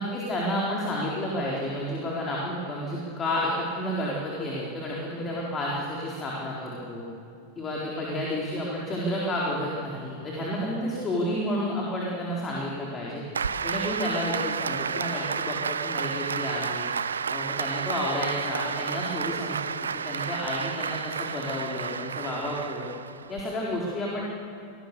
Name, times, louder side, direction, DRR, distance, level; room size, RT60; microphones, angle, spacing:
voice 1, 0.0-7.1 7.6-13.2 13.6-16.9 17.3-19.6 20.0-22.9 23.3-24.3, left 1 dB, 20° left, -4 dB, 4.2 m, -31 dB
Applause, 13.3-23.4, right 6 dB, 70° right, 0.6 m, -31 dB
26.5 x 19.0 x 7.0 m, 2.7 s
figure-of-eight pair, 90°, 0 cm